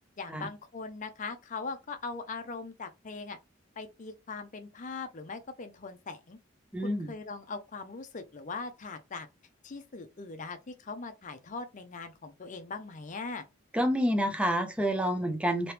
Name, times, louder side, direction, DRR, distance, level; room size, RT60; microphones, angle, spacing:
voice 1, 0.2-3.4 3.8-6.4 6.8-9.3 9.6-13.5, left 4 dB, 40° left, 0.5 m, -40 dB
voice 2, 6.7-7.1 13.7-15.7, equal, 5° right, 0.6 m, -28 dB
3.0 x 2.9 x 3.2 m
head